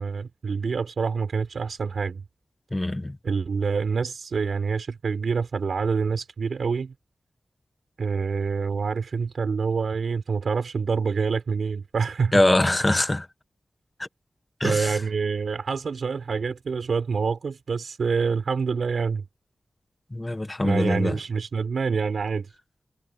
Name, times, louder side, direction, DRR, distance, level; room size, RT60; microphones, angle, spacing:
voice 1, 0.0-2.2 3.2-6.9 8.0-12.4 12.9-13.0 14.6-19.2 20.6-22.5, right 5 dB, 80° right, 5.9 m, -26 dB
voice 2, 2.7-3.1 12.3-13.2 14.6-14.9 20.1-21.1, left 1 dB, 20° left, 1.3 m, -23 dB
wide cardioid pair, 125°, 0 cm